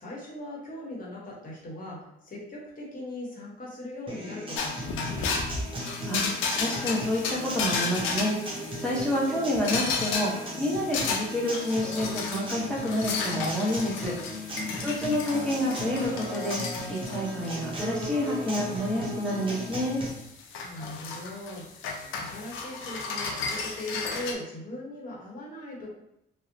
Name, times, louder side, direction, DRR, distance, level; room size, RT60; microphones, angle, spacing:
voice 1, 0.0-5.4 14.6-15.3 20.6-25.9, left 1 dB, 45° left, -4 dB, 1.0 m, -40 dB
Acoustic guitar, 4.1-20.1, equal, 25° right, 0.7 m, -37 dB
sound 1, 4.5-24.3, left 4 dB, 85° left, 0.4 m, -34 dB
voice 2, 5.8-20.0, left 1 dB, 5° left, -6 dB, 0.8 m, -29 dB
2.6 x 2.1 x 2.6 m, 0.81 s
cardioid pair, 90°, 20 cm